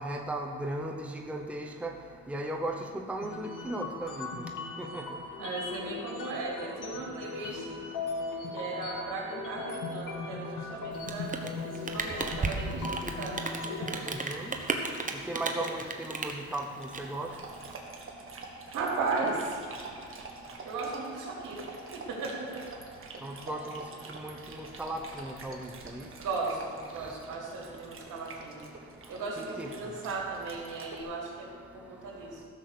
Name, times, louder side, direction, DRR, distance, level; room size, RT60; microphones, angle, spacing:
voice 1, 0.0-1.9 2.3-4.3 4.8-5.0 14.0-14.5 15.3-17.3 23.2-23.8 24.1-26.0 29.4-29.7, right 1 dB, 5° right, 2 dB, 0.8 m, -36 dB
sound 1, 3.2-14.1, left 3 dB, 85° left, 1.7 m, -38 dB
voice 2, 5.4-7.8 8.5-14.1 15.4-15.7 18.7-19.8 20.6-23.4 26.2-32.5, right 3 dB, 75° right, -2 dB, 3.4 m, -37 dB
Rain, 10.9-17.7, right 3 dB, 25° right, 1.1 m, -35 dB
Dog, 16.8-31.0, right 3 dB, 45° right, 1.8 m, -46 dB
14.5 x 6.3 x 6.8 m, 2.1 s
cardioid pair, 115°, 31 cm